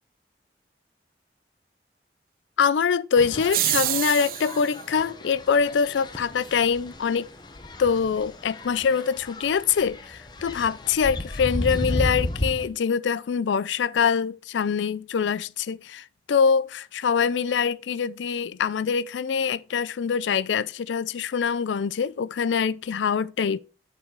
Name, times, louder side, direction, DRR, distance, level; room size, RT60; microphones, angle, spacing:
voice 1, 2.6-7.3 7.8-23.6, left 6 dB, 85° left, 0.4 m, -24 dB
sound 1, 3.2-12.7, left 1 dB, 25° left, 0.8 m, -34 dB
sound 2, 3.4-4.7, right 14 dB, 50° right, 0.4 m, -26 dB
8.8 x 4.1 x 4.6 m
head